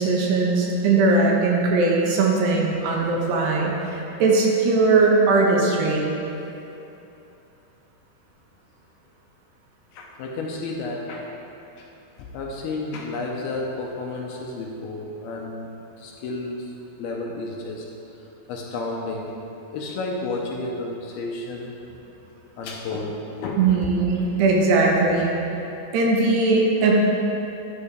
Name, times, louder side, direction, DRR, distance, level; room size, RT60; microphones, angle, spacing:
voice 1, 0.0-6.1 23.6-25.4 25.9-26.9, right 3 dB, 75° right, -2 dB, 3.2 m, -20 dB
voice 2, 9.9-11.2 11.8-11.9 12.2-15.7 16.0-16.7 17.0-17.9 18.5-19.3 19.7-21.7 22.6-23.9, left 2 dB, 75° left, -1 dB, 2.5 m, -31 dB
11.0 x 11.0 x 3.4 m, 2.9 s
omnidirectional pair, 5.0 m